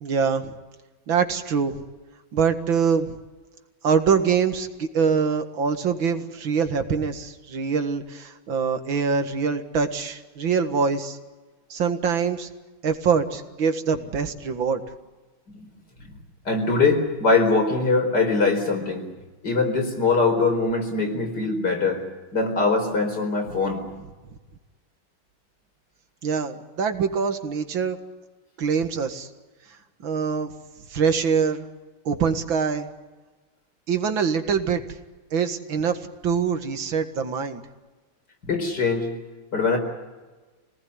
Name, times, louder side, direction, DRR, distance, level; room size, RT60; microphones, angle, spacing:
voice 1, 0.0-0.5 1.1-1.8 2.3-3.2 3.8-11.2 11.7-12.5 12.8-14.8 26.2-28.0 28.6-29.3 30.0-30.5 30.9-31.7 32.1-32.9 33.9-34.8 35.3-37.6, right 6 dB, 85° right, 7 dB, 2.5 m, -24 dB
voice 2, 16.5-19.1 19.4-22.0 22.3-23.8 38.5-39.1 39.5-39.8, left 3 dB, 60° left, 4 dB, 5.1 m, -22 dB
26.0 x 18.5 x 9.6 m, 1.3 s
omnidirectional pair, 2.1 m